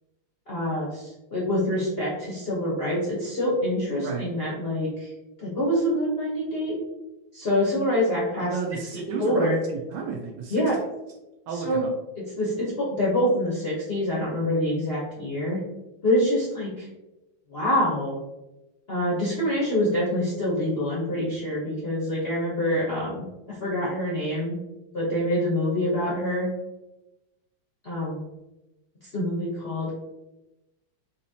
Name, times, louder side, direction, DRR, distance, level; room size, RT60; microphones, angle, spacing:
voice 1, 0.5-5.1 5.4-6.8 7.3-8.6 9.2-9.6 10.5-10.8 11.5-11.8 12.4-15.6 16.0-16.9 17.5-18.2 18.9-24.6 24.9-26.5 27.8-28.2 29.1-29.9, left 1 dB, 50° left, -6 dB, 0.7 m, -26 dB
voice 2, 8.4-10.9 11.5-11.9, right 5 dB, 75° right, 1 dB, 1.1 m, -33 dB
4.0 x 2.9 x 2.7 m, 0.97 s
omnidirectional pair, 2.2 m